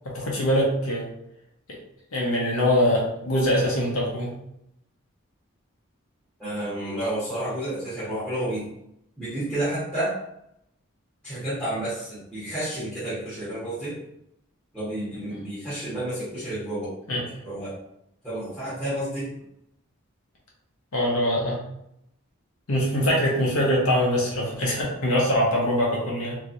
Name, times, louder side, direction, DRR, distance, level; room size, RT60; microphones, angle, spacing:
voice 1, 0.0-1.0 2.1-4.3 17.1-17.2 20.9-21.6 22.7-26.4, equal, 85° left, -4 dB, 1.1 m, -23 dB
voice 2, 6.4-8.7 9.2-10.2 11.2-14.0 14.7-16.9 17.4-17.8 18.2-19.3, right 1 dB, 5° left, -14 dB, 1.2 m, -30 dB
3.0 x 3.0 x 2.6 m, 0.78 s
head